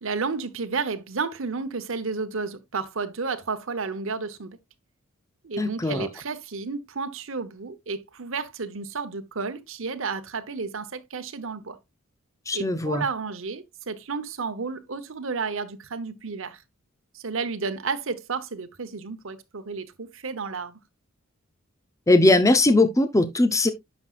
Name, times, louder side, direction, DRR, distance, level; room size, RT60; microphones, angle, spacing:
voice 1, 0.0-4.6 5.4-11.8 12.5-16.6 17.1-20.8, right 4 dB, 65° right, 0.9 m, -32 dB
voice 2, 5.6-6.1 12.5-13.0 22.1-23.7, left 2 dB, 15° left, 0.6 m, -20 dB
9.6 x 6.1 x 2.4 m
head